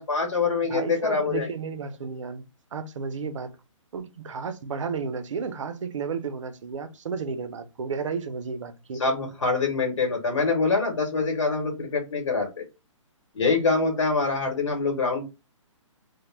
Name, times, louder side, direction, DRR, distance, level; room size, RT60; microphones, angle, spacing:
voice 1, 0.0-1.5 9.0-12.6 13.3-15.2, left 4 dB, 60° left, 0.9 m, -25 dB
voice 2, 0.7-2.4 2.7-3.5 3.9-9.0, right 5 dB, 65° right, 0.5 m, -32 dB
2.1 x 2.0 x 3.1 m
hypercardioid pair, 175°, 17 cm